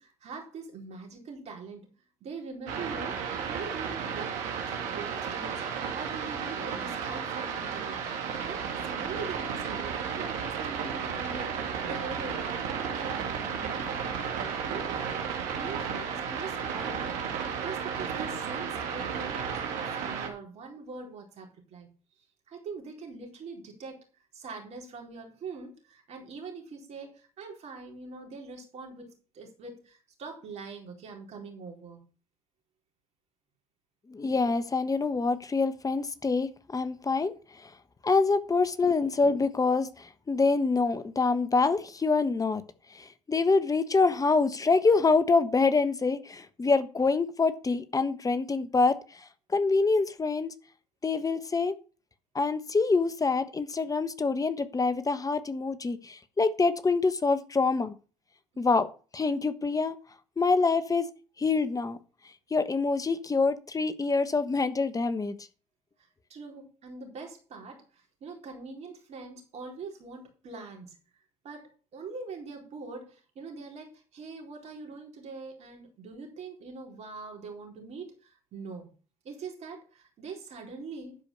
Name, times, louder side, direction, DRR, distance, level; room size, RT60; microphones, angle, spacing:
voice 1, 0.0-1.9 2.2-8.0 8.4-14.2 14.7-15.2 15.6-21.9 22.5-24.0 24.3-32.0 66.0-71.0 71.4-78.9 79.2-81.2, right 4 dB, 60° right, 4.2 m, -43 dB
sound 1, 2.7-20.3, right 7 dB, 75° right, 2.1 m, -33 dB
voice 2, 34.1-37.3 37.6-37.7 38.0-42.6 42.9-49.2 49.5-50.5 51.0-51.7 52.3-57.9 58.6-58.9 59.1-59.9 60.4-61.1 61.4-62.0 62.5-65.4, left 4 dB, 25° left, 1.3 m, -26 dB
11.5 x 5.1 x 6.9 m
hypercardioid pair, 65°, 13 cm